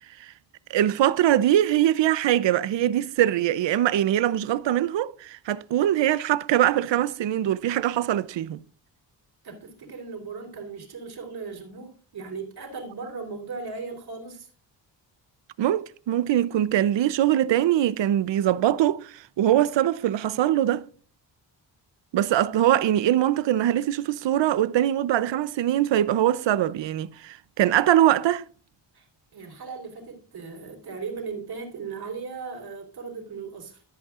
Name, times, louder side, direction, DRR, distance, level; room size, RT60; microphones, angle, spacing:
voice 1, 0.7-8.6 15.6-20.9 22.1-28.4, right 12 dB, 85° right, 0.7 m, -22 dB
voice 2, 9.4-14.5 28.9-29.1 29.3-33.8, right 4 dB, 60° right, 3.5 m, -37 dB
13.5 x 8.2 x 2.4 m
wide cardioid pair, 145°, 43 cm